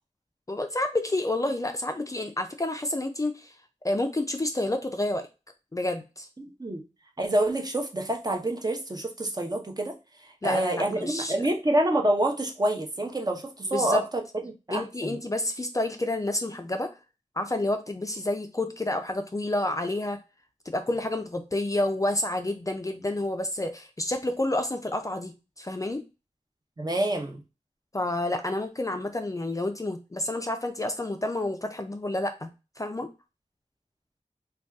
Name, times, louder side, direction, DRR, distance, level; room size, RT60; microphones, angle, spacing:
voice 1, 0.5-3.5 3.8-5.3 5.7-6.3 10.4-11.5 13.7-14.0 14.7-16.9 17.4-20.2 20.7-26.0 27.9-32.5 32.8-33.1, left 1 dB, 25° left, 6 dB, 0.4 m, -29 dB
voice 2, 6.4-6.8 7.2-9.9 10.4-15.2 26.8-27.4, right 1 dB, 30° right, 2 dB, 0.7 m, -27 dB
2.6 x 2.3 x 3.4 m, 0.28 s
wide cardioid pair, 60°, 13 cm